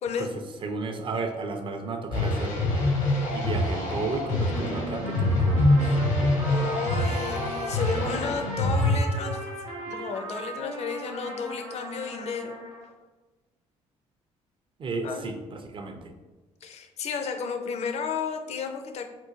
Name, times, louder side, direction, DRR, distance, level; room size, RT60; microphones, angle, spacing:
voice 1, 0.0-0.3 6.5-9.4 9.9-12.6 15.0-15.3 16.6-19.0, left 5 dB, 40° left, 6 dB, 0.4 m, -32 dB
voice 2, 0.6-2.6 3.3-5.8 14.8-16.1, right 3 dB, 30° right, 5 dB, 0.5 m, -33 dB
sound 1, 2.1-9.0, left 1 dB, 75° left, 0.7 m, -25 dB
Trumpet, 5.0-12.9, right 1 dB, 80° right, 0.7 m, -38 dB
3.7 x 2.4 x 2.4 m, 1.2 s
figure-of-eight pair, 45°, 16 cm